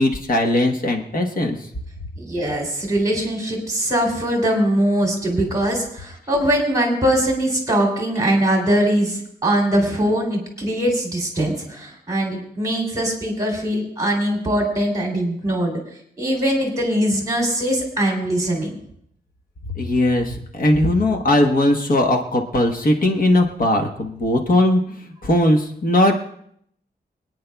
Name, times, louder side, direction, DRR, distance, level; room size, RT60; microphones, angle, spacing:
voice 1, 0.0-1.6 19.8-26.2, left 1 dB, 55° left, 2 dB, 1.1 m, -19 dB
voice 2, 2.2-15.7 16.2-18.8, right 1 dB, 20° right, 0 dB, 2.8 m, -21 dB
26.0 x 9.5 x 2.3 m, 0.68 s
wide cardioid pair, 180°, 17 cm